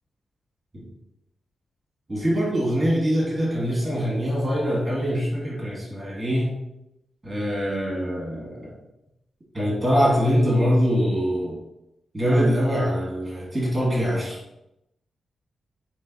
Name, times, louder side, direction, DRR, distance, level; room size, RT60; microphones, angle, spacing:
voice 1, 2.1-6.5 7.2-8.7 9.5-11.6 12.1-14.4, equal, 15° right, -4 dB, 1.5 m, -23 dB
3.9 x 3.1 x 3.8 m, 0.86 s
wide cardioid pair, 125°, 0 cm